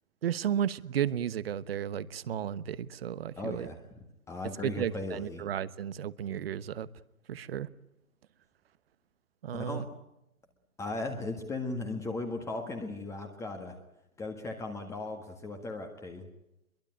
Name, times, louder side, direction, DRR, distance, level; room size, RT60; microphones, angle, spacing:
voice 1, 0.2-3.7 4.6-6.9 7.3-7.7 9.4-9.8, right 9 dB, 45° right, 1.2 m, -33 dB
voice 2, 3.4-3.8 4.3-5.4 9.5-9.9 10.8-13.8 14.2-16.3, left 2 dB, 5° left, 1.7 m, -37 dB
24.5 x 23.0 x 9.1 m
hypercardioid pair, 145°, 41 cm